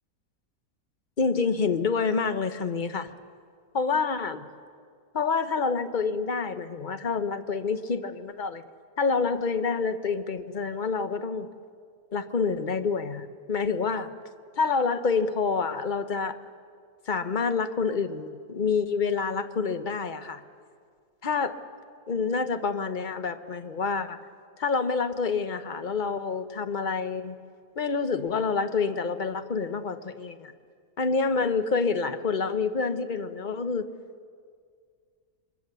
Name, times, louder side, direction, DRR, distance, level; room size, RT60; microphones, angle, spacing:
voice 1, 1.2-3.1 3.7-4.5 5.1-8.6 9.0-11.5 12.1-14.1 14.6-16.4 17.1-20.4 21.2-21.6 22.1-24.2 24.6-27.4 27.8-30.5 31.0-33.9, left 5 dB, 35° left, 10 dB, 0.9 m, -27 dB
26.0 x 23.0 x 6.8 m, 2.1 s
omnidirectional pair, 1.6 m